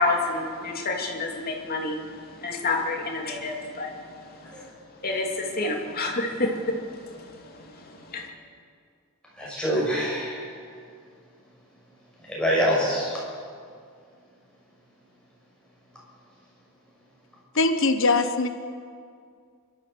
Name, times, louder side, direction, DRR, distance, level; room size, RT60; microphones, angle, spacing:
voice 1, 0.0-4.7 5.0-8.3, left 2 dB, 45° left, 0 dB, 2.9 m, -29 dB
voice 2, 9.3-10.5 12.3-13.2, equal, 5° left, -5 dB, 6.6 m, -25 dB
voice 3, 17.6-18.5, left 3 dB, 60° left, 8 dB, 1.2 m, -21 dB
29.0 x 13.0 x 7.0 m, 2.2 s
head